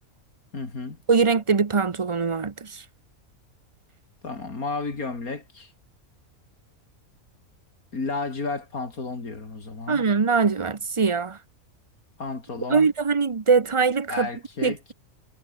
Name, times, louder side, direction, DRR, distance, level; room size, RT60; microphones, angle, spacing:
voice 1, 0.5-1.0 4.2-5.7 7.9-10.0 12.2-12.9 14.1-14.8, left 3 dB, 85° left, 3.9 m, -32 dB
voice 2, 1.1-2.8 9.9-11.4 12.7-14.3 14.6-14.9, right 5 dB, 25° right, 0.8 m, -22 dB
omnidirectional pair, 1.5 m